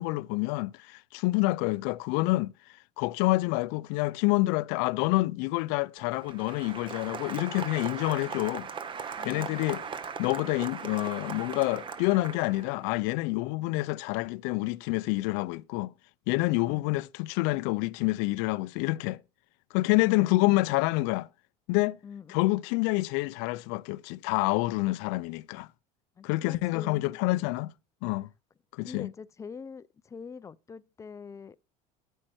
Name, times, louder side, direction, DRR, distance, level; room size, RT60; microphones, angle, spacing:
voice 1, 0.0-2.5 3.0-8.7 9.2-9.8 10.2-15.9 16.3-19.2 19.7-21.3 21.7-22.0 22.3-25.7 26.2-27.7 28.0-28.3 28.7-29.1, left 21 dB, 70° left, 0.5 m, -27 dB
Applause, 6.0-12.9, right 6 dB, 25° right, 0.8 m, -39 dB
voice 2, 9.1-9.6 16.4-16.9 19.8-20.3 22.0-22.5 26.2-27.1 28.8-31.6, left 6 dB, 15° left, 0.4 m, -44 dB
8.9 x 5.4 x 6.2 m
cardioid pair, 130°, 18 cm